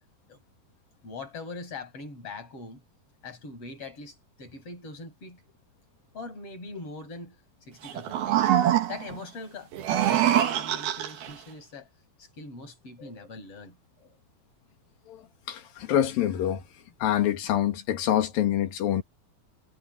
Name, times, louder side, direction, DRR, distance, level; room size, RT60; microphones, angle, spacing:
voice 1, 1.0-2.8 3.2-5.4 6.1-8.4 8.9-11.9 12.2-13.8, left 3 dB, 40° left, 6.8 m, -42 dB
sound 1, 7.8-9.2 9.7-11.3, right 11 dB, 80° right, 3.7 m, -24 dB
voice 2, 15.5-16.6 17.0-19.0, left 11 dB, 70° left, 3.6 m, -26 dB
omnidirectional pair, 4.3 m